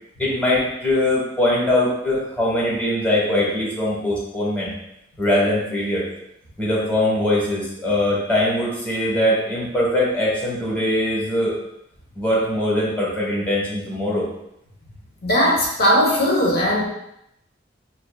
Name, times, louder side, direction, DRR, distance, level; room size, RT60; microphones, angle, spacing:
voice 1, 0.2-4.7 5.2-6.0 6.6-11.6 12.1-14.3, left 1 dB, 10° left, -6 dB, 1.1 m, -21 dB
voice 2, 15.2-16.8, equal, 60° left, -3 dB, 0.9 m, -18 dB
6.1 x 2.5 x 2.3 m, 0.80 s
head